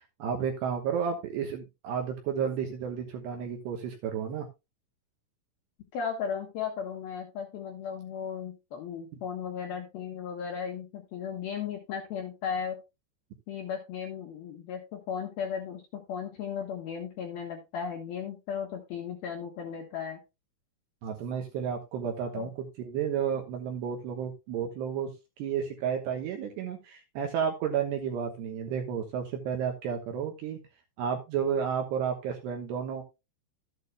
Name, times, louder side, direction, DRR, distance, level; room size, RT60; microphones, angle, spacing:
voice 1, 0.2-4.5 21.0-22.5 22.8-25.1 25.4-30.6 31.0-33.0, right 7 dB, 70° right, 3 dB, 2.8 m, -32 dB
voice 2, 5.9-12.8 13.5-20.2 22.3-22.5, left 7 dB, 70° left, 1 dB, 2.4 m, -36 dB
13.0 x 8.5 x 2.2 m, 0.25 s
omnidirectional pair, 5.8 m